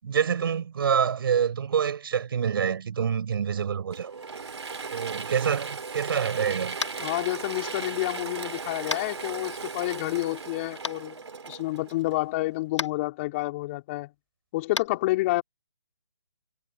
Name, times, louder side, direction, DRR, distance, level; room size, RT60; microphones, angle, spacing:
voice 1, 0.0-4.1 4.9-6.8, right 7 dB, 50° right, 5.1 m, -26 dB
Mechanisms / Drill, 3.9-12.5, right 4 dB, 70° right, 2.9 m, -37 dB
Tap, 6.8-7.0 8.9-9.1 10.8-10.9 12.7-12.9 14.7-14.9, left 4 dB, 85° left, 1.0 m, -30 dB
voice 2, 7.0-11.2 11.5-14.1 14.5-15.4, left 19 dB, 25° left, 4.0 m, -29 dB
figure-of-eight pair, 150°, 15 cm